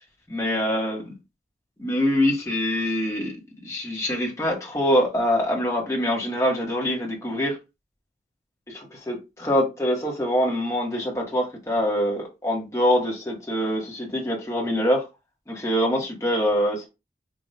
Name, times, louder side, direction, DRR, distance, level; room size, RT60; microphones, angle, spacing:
voice 1, 0.3-1.0 1.8-3.3 3.6-7.6 8.7-15.0 15.5-16.9, equal, 15° left, 1.4 m, -24 dB
4.9 x 2.7 x 2.7 m
head